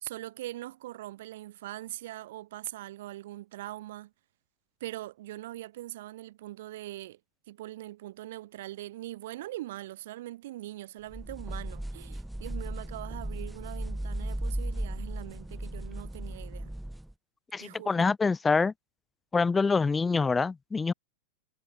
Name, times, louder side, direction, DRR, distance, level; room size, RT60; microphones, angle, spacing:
voice 1, 0.0-4.1 4.8-7.2 7.5-16.7 17.6-18.1, right 15 dB, 55° right, 2.1 m, -42 dB
sound 1, 11.1-17.1, right 1 dB, 5° right, 1.2 m, -36 dB
voice 2, 17.5-18.7 19.3-20.9, left 4 dB, 15° left, 0.5 m, -25 dB
figure-of-eight pair, 90°, 0 cm